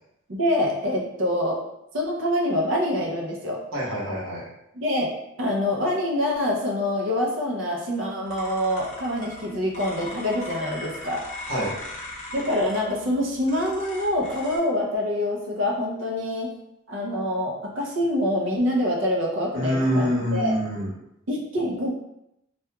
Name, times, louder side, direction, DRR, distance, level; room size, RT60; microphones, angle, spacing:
voice 1, 0.3-1.6 1.9-3.6 4.7-5.1 5.4-11.2 12.3-16.5 16.9-20.5 21.3-21.9, left 1 dB, 70° right, -1 dB, 0.6 m, -25 dB
voice 2, 3.7-4.4 11.5-11.7 19.5-20.9, equal, 90° right, -6 dB, 1.0 m, -25 dB
sound 1, 8.3-14.6, left 1 dB, 35° left, 0.6 m, -39 dB
2.9 x 2.3 x 2.2 m, 0.82 s
head